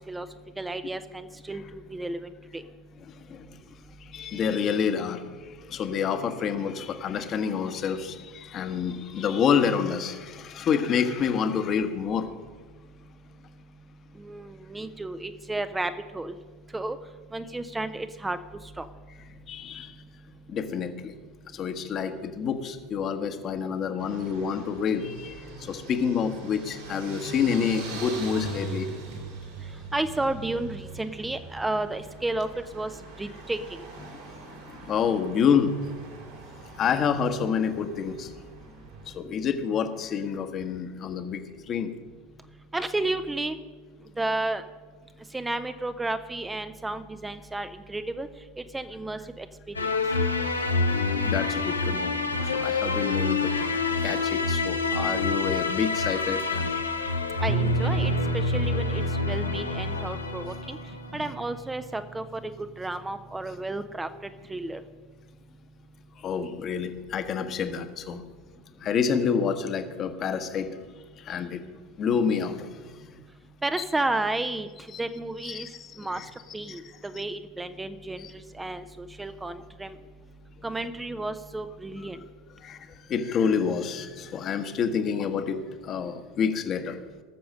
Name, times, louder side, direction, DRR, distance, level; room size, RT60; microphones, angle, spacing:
voice 1, 0.6-2.6 14.2-16.4 16.7-17.0 17.3-18.9 29.9-32.5 32.7-32.9 33.2-33.8 42.7-43.6 44.2-44.6 45.3-48.3 48.6-49.9 57.4-60.8 61.1-64.1 64.5-64.8 73.6-75.7 76.0-76.2 76.5-80.0 80.6-82.2, right 2 dB, 10° right, 10 dB, 0.7 m, -32 dB
voice 2, 4.1-5.2 5.7-12.2 19.5-19.9 20.5-21.1 21.6-25.3 25.7-28.9 34.9-35.7 36.8-38.3 39.1-41.4 41.7-41.9 51.2-52.1 52.5-53.5 54.0-56.7 61.1-61.2 66.2-68.2 68.8-70.7 71.3-71.6 72.0-72.7 74.9-75.0 75.4-75.7 76.1-76.2 77.1-77.2 78.2-78.3 82.6-82.8 83.1-87.0, left 7 dB, 35° left, 8 dB, 1.3 m, -28 dB
sound 1, 24.0-39.1, right 3 dB, 65° right, 3.3 m, -41 dB
sound 2, 49.7-61.1, left 4 dB, 85° left, 0.9 m, -27 dB
sound 3, 57.5-63.2, right 5 dB, 45° right, 0.8 m, -33 dB
18.0 x 7.0 x 6.5 m, 1.4 s
figure-of-eight pair, 80°, 0 cm